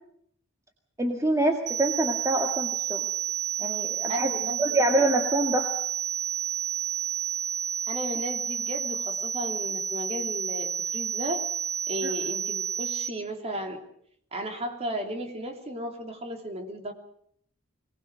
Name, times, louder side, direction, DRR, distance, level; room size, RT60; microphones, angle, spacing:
voice 1, 1.0-3.0 3.6-4.3 4.6-5.7 12.0-12.1, right 1 dB, 15° right, 3 dB, 1.9 m, -25 dB
sound 1, 1.7-13.1, right 8 dB, 55° right, 2.5 m, -30 dB
voice 2, 4.1-4.8 7.9-11.4 11.9-13.8 14.3-16.9, equal, 30° right, 4 dB, 3.1 m, -34 dB
24.0 x 19.5 x 6.4 m, 0.65 s
head